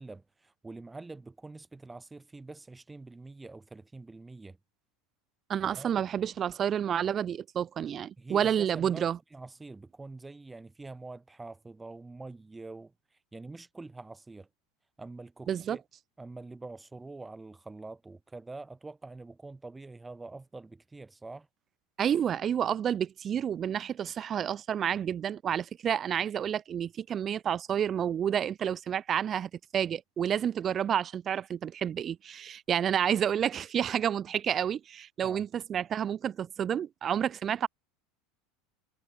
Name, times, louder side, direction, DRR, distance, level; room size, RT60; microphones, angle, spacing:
voice 1, 0.0-4.6 5.8-5.9 8.2-14.5 15.0-15.8 16.2-21.5 35.2-35.4, right 3 dB, 10° right, 3.4 m, -45 dB
voice 2, 5.5-9.2 15.5-15.8 22.0-37.7, right 9 dB, 30° right, 0.4 m, -30 dB
supercardioid pair, 130°, 0 cm